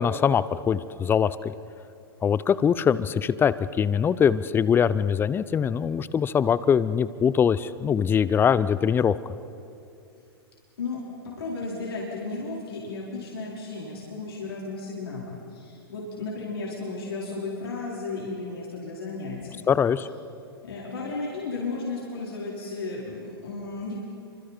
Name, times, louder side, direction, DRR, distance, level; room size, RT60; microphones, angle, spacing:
voice 1, 0.0-1.5 2.2-9.2 19.7-20.1, left 7 dB, 15° left, 17 dB, 0.6 m, -22 dB
voice 2, 10.8-19.7 20.6-24.0, left 3 dB, 75° left, -5 dB, 4.7 m, -34 dB
30.0 x 25.0 x 4.5 m, 2.6 s
figure-of-eight pair, 105°, 13 cm